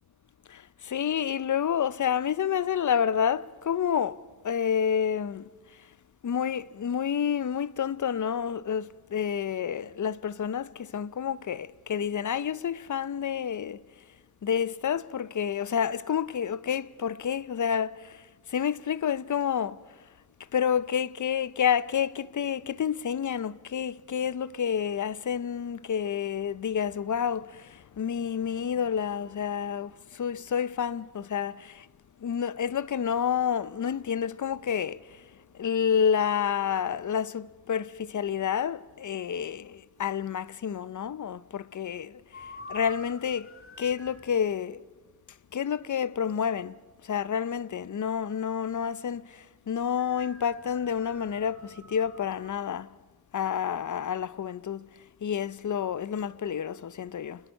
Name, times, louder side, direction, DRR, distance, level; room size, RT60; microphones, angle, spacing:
voice 1, 0.5-4.2 4.4-5.5 6.2-13.8 14.4-18.2 18.5-19.8 20.5-31.9 32.2-35.0 35.5-42.2 42.7-43.5 43.8-44.8 45.5-46.7 47.1-52.9 53.3-54.9 55.2-57.4, left 8 dB, 50° left, 0.6 m, -29 dB
sound 1, 42.3-44.3 50.0-52.7, left 2 dB, 35° left, 2.1 m, -48 dB
29.0 x 20.5 x 5.5 m
wide cardioid pair, 85°, 39 cm